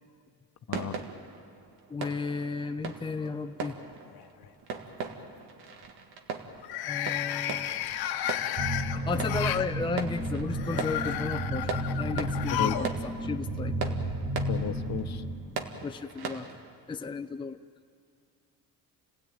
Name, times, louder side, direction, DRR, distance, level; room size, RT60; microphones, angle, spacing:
sound 1, 0.7-16.7, right 5 dB, 90° right, 1.9 m, -40 dB
voice 1, 1.9-3.8 6.9-7.8 8.9-14.0 15.8-16.5 16.9-17.6, left 4 dB, 15° left, 5 dB, 0.6 m, -34 dB
sound 2, 3.1-3.7 4.1-4.5 6.6-9.7 10.5-12.9 13.2-13.3 14.4-14.5, left 11 dB, 85° left, 1.1 m, -33 dB
sound 3, 8.6-15.3, right 1 dB, 75° right, 6.5 m, -32 dB
voice 2, 14.5-15.2, left 9 dB, 45° left, 8 dB, 1.1 m, -33 dB
29.0 x 17.0 x 9.1 m, 2.2 s
cardioid pair, 120°, 37 cm